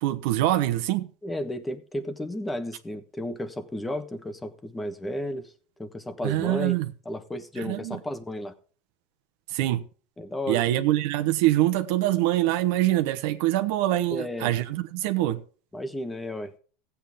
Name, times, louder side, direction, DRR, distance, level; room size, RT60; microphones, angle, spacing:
voice 1, 0.0-1.1 6.2-6.9 7.6-8.0 9.5-9.8 10.5-15.4, right 15 dB, 70° right, 1.2 m, -24 dB
voice 2, 1.2-5.5 5.8-6.8 7.0-8.5 10.2-10.6 14.1-14.5 15.7-16.5, left 1 dB, 10° left, 1.2 m, -33 dB
15.0 x 8.5 x 3.6 m
supercardioid pair, 125°, 0 cm